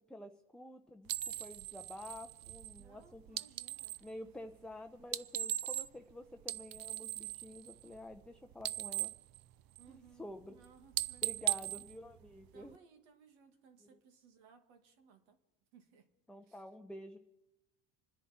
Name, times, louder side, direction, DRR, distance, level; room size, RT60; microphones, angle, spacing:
voice 1, 0.1-3.4 4.0-9.1 9.9-10.6 11.2-12.8 13.8-14.0 16.3-17.2, left 1 dB, ahead, 0.6 m, -50 dB
sound 1, 1.1-4.1 5.0-6.1 6.4-8.3 8.5-10.1 10.4-10.6 10.9-12.8, right 15 dB, 45° right, 0.6 m, -39 dB
voice 2, 2.8-4.3 9.8-11.7 12.5-15.4 15.7-16.1 16.5-16.6, right 6 dB, 75° right, 2.2 m, -63 dB
27.0 x 10.0 x 4.4 m
supercardioid pair, 95°, 48 cm